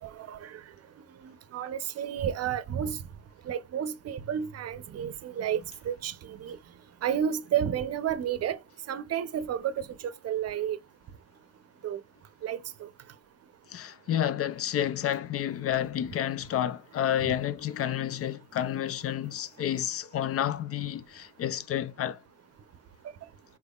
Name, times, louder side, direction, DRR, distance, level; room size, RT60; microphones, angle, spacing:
voice 1, 0.2-0.5 1.5-3.0 3.5-5.6 5.9-6.6 7.0-8.6 8.9-9.9 10.2-10.8 11.8-12.0 12.4-12.9, right 9 dB, 55° right, 0.6 m, -31 dB
voice 2, 13.7-22.2, left 10 dB, 50° left, 0.4 m, -30 dB
4.4 x 3.5 x 2.3 m
cardioid pair, 90°, 30 cm